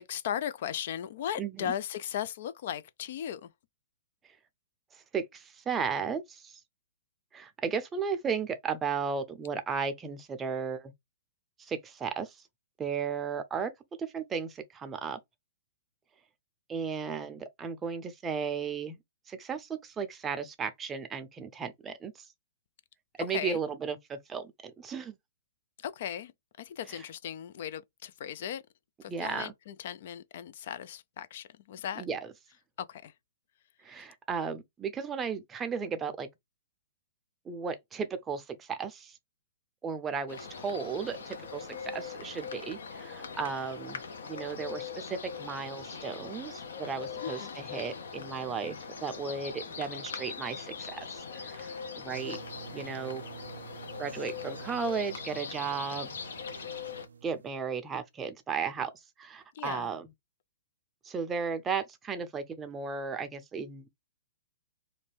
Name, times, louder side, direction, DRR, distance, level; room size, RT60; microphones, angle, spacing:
voice 1, 0.0-3.5 23.3-23.6 25.8-26.3 26.6-28.6 29.0-32.1 32.8-33.1 33.9-34.1 47.2-47.5 59.5-59.9, left 9 dB, 60° left, 0.3 m, -37 dB
voice 2, 1.4-1.7 4.9-6.6 7.3-10.9 11.6-12.4 12.8-13.7 14.0-15.2 16.7-19.0 19.3-22.3 23.2-25.2 26.9-27.0 29.1-29.5 32.0-32.3 33.8-36.3 37.5-39.2 39.8-44.0 44.3-52.4 52.7-53.2 54.0-56.2 57.2-58.9 59.2-60.1 61.0-63.9, right 6 dB, 15° right, 0.5 m, -35 dB
sound 1, 40.3-57.0, left 5 dB, 75° left, 0.8 m, -41 dB
sound 2, 52.1-57.5, right 6 dB, 85° right, 0.6 m, -48 dB
2.6 x 2.2 x 3.2 m
hypercardioid pair, 130°, 0 cm